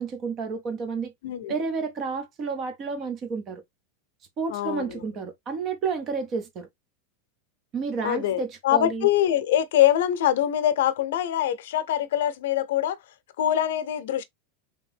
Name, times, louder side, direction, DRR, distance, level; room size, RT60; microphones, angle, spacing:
voice 1, 0.0-1.1 1.5-3.6 4.4-6.7 7.7-9.1, right 5 dB, 25° right, 0.6 m, -30 dB
voice 2, 4.5-5.1 8.0-13.0 13.4-14.2, left 11 dB, 70° left, 0.6 m, -24 dB
3.5 x 2.8 x 3.3 m
supercardioid pair, 175°, 0 cm